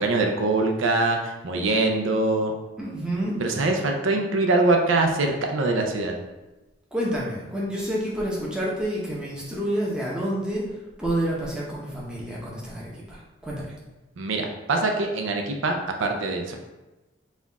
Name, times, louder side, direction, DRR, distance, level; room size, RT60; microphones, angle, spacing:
voice 1, 0.0-2.5 3.4-6.1 14.2-16.5, right 2 dB, 75° right, 3 dB, 0.5 m, -23 dB
voice 2, 2.8-3.4 6.9-13.7, right 1 dB, 5° right, -5 dB, 0.7 m, -29 dB
4.1 x 2.4 x 3.9 m, 1.1 s
head